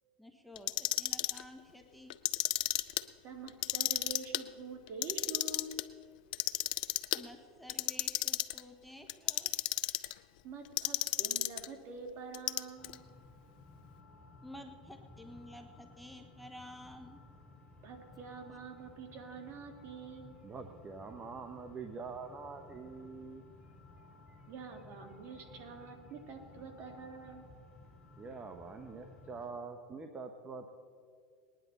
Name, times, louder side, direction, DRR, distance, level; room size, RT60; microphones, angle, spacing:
voice 1, 0.2-2.2 7.1-9.5 14.4-17.2, left 1 dB, ahead, 5 dB, 1.1 m, -52 dB
Clock, 0.6-1.4 2.1-3.0 3.5-4.4 4.9-5.8 6.3-7.2 7.7-8.6 9.1-10.1 10.8-11.7 12.3-12.9, left 18 dB, 70° left, 0.5 m, -32 dB
voice 2, 3.2-5.7 10.4-13.0 17.8-20.3 24.5-27.5, right 4 dB, 50° right, 4 dB, 2.3 m, -46 dB
sound 1, 12.8-29.4, left 3 dB, 20° left, 4.0 m, -57 dB
voice 3, 20.4-23.5 24.3-24.4 28.2-30.7, right 4 dB, 25° right, 6 dB, 1.0 m, -45 dB
19.5 x 10.5 x 4.1 m, 2.2 s
hypercardioid pair, 105°, 5 cm